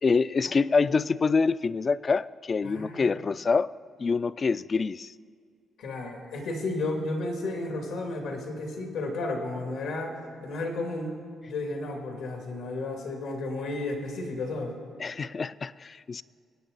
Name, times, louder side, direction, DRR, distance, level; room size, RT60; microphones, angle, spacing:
voice 1, 0.0-3.7 4.0-5.1 15.0-16.2, left 4 dB, 40° left, 18 dB, 0.3 m, -26 dB
voice 2, 2.6-3.1 5.8-11.2 11.5-14.7, left 2 dB, 90° left, 1 dB, 2.4 m, -33 dB
23.0 x 8.7 x 4.0 m, 2.2 s
cardioid pair, 90°, 0 cm